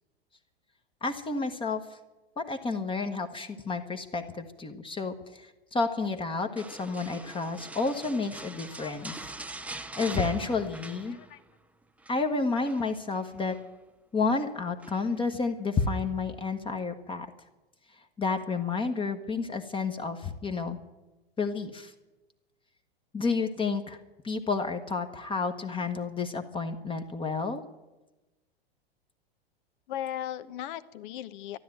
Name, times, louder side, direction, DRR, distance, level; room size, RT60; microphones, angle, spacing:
voice 1, 1.0-1.8 2.4-9.2 10.0-11.2 12.1-13.5 14.1-17.3 18.2-20.8 21.4-21.9 23.1-24.0 24.2-27.6, left 4 dB, 15° left, 6 dB, 1.2 m, -30 dB
sound 1, 6.6-11.6 11.8-12.2 12.6-13.7 14.8-15.3 15.8-15.9, right 2 dB, 5° right, 0.6 m, -43 dB
voice 2, 8.4-9.2 9.6-9.8 10.2-10.3 11.1-11.4 29.9-31.6, left 12 dB, 55° left, 14 dB, 1.0 m, -39 dB
13.0 x 11.5 x 9.0 m, 1.1 s
hypercardioid pair, 105°, 31 cm